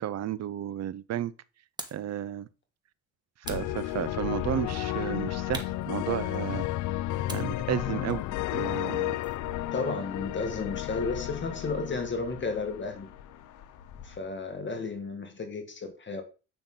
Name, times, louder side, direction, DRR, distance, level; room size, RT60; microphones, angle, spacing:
voice 1, 0.0-1.3 1.9-2.5 3.5-6.7 7.3-8.2 8.5-9.2, right 11 dB, 60° right, 0.6 m, -32 dB
sound 1, 1.8-2.1 3.4-4.4 5.5-6.6 7.3-9.5, right 2 dB, 15° right, 1.4 m, -44 dB
sound 2, 3.4-14.2, left 8 dB, 90° left, 1.0 m, -43 dB
sound 3, 3.5-13.5, left 16 dB, 75° left, 0.4 m, -33 dB
voice 2, 9.7-13.1 14.0-16.2, left 4 dB, 40° left, 1.8 m, -33 dB
8.8 x 5.9 x 3.8 m
cardioid pair, 90°, 30 cm